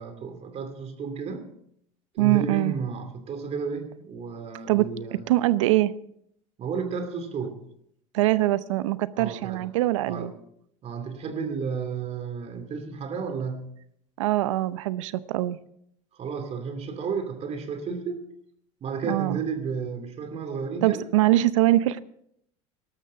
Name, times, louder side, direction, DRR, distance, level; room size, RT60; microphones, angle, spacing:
voice 1, 0.0-1.5 2.2-5.2 6.6-7.6 9.2-9.6 10.1-10.3 10.8-13.7 16.1-18.2 18.8-21.0, right 5 dB, 45° right, 8 dB, 2.7 m, -32 dB
voice 2, 2.2-2.7 4.7-5.9 8.1-10.3 14.2-15.6 19.1-19.4 20.8-22.0, right 16 dB, 85° right, 16 dB, 0.7 m, -23 dB
18.5 x 13.0 x 3.8 m, 0.71 s
hypercardioid pair, 90°, 16 cm